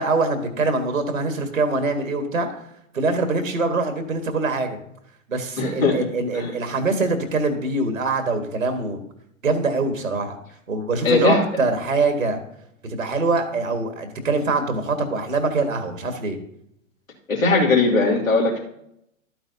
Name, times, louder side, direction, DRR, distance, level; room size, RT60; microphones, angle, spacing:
voice 1, 0.0-2.5 2.9-4.8 5.3-9.0 9.4-10.4 10.7-12.4 12.9-16.4, right 3 dB, 80° right, 6 dB, 1.9 m, -23 dB
voice 2, 5.6-5.9 6.3-6.5 11.0-11.4 17.3-18.6, left 3 dB, 85° left, -4 dB, 2.7 m, -19 dB
12.5 x 8.8 x 2.8 m, 0.74 s
figure-of-eight pair, 110°, 39 cm